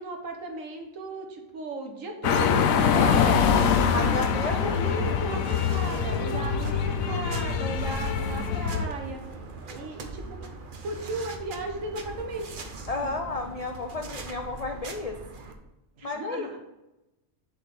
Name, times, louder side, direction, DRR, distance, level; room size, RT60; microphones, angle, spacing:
voice 1, 0.0-2.7 3.6-3.8 4.1-9.2 9.7-10.4 10.8-12.5 16.0-16.6, right 2 dB, 75° right, 3 dB, 1.5 m, -36 dB
sound 1, 2.2-8.9, left 7 dB, 85° left, 1.1 m, -24 dB
voice 2, 2.9-3.4 3.9-4.6 12.9-15.2 16.0-16.6, left 3 dB, 60° left, 5 dB, 0.3 m, -31 dB
sound 2, 2.9-15.5, right 3 dB, 45° right, 0.9 m, -41 dB
7.0 x 4.1 x 6.6 m, 0.98 s
omnidirectional pair, 1.4 m